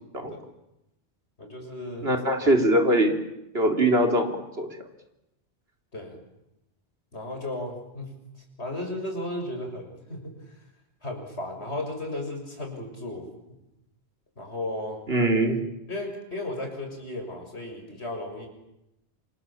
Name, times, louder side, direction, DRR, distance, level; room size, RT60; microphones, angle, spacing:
voice 1, 1.4-2.1 2.4-2.5 5.9-6.2 7.1-8.1 8.6-10.4 11.0-13.6 14.4-15.0 15.9-18.5, left 1 dB, 70° left, 3 dB, 6.8 m, -35 dB
voice 2, 2.0-3.2 3.5-4.7 15.1-15.6, right 1 dB, 60° right, 4 dB, 4.0 m, -22 dB
28.0 x 27.5 x 7.5 m, 0.89 s
omnidirectional pair, 1.2 m